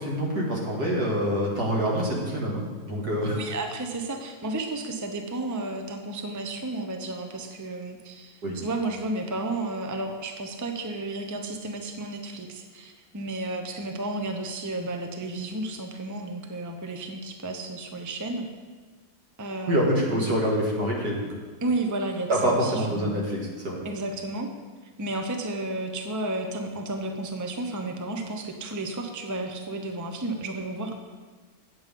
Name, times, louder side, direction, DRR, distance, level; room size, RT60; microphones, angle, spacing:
voice 1, 0.0-3.4 8.4-8.6 19.7-21.3 22.3-23.8, equal, 80° right, -2 dB, 2.6 m, -26 dB
voice 2, 3.3-18.5 19.4-20.1 21.6-23.3 23.8-24.5 25.0-31.0, right 2 dB, 20° right, 3 dB, 0.6 m, -32 dB
9.1 x 8.0 x 5.3 m, 1.4 s
omnidirectional pair, 1.6 m